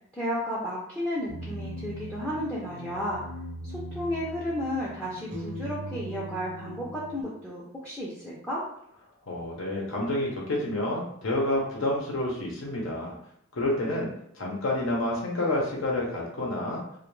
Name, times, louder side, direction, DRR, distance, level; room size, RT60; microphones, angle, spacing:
voice 1, 0.1-3.2 3.6-8.6, equal, 5° left, -7 dB, 0.4 m, -33 dB
sound 1, 1.3-7.2, equal, 55° right, 0.6 m, -39 dB
voice 2, 9.3-13.1 13.5-14.1 14.4-16.8, left 1 dB, 75° left, -2 dB, 0.6 m, -29 dB
2.2 x 2.1 x 3.0 m, 0.71 s
head